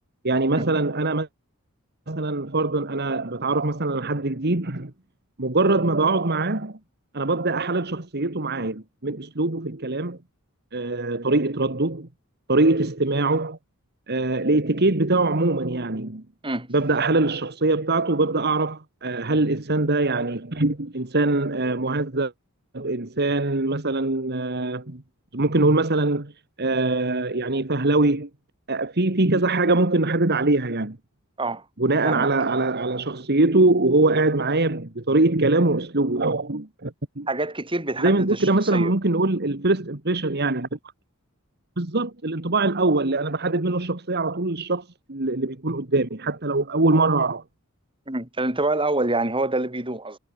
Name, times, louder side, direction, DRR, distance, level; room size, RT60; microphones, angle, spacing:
voice 1, 0.2-1.3 2.1-4.9 5.4-6.8 7.1-10.2 10.7-12.1 12.5-13.6 14.1-16.2 16.7-22.3 22.7-25.0 25.3-26.3 26.6-28.3 28.7-31.0 31.8-37.3 38.0-40.8 41.8-47.4, right 2 dB, 50° right, 2.0 m, -23 dB
voice 2, 37.3-38.9 48.1-50.2, right 2 dB, 25° right, 5.9 m, -26 dB
head